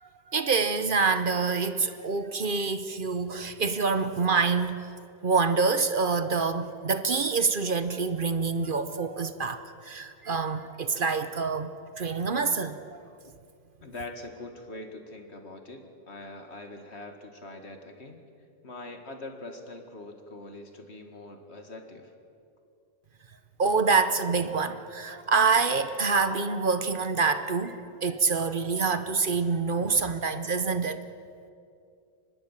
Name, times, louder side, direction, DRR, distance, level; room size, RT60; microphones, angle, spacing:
voice 1, 0.0-4.9 5.2-11.7 12.0-13.0 23.6-31.0, right 4 dB, 45° right, 11 dB, 0.7 m, -26 dB
voice 2, 13.8-18.2 18.6-22.1, left 2 dB, 35° left, 5 dB, 2.1 m, -43 dB
24.5 x 20.0 x 7.4 m, 2.5 s
omnidirectional pair, 2.0 m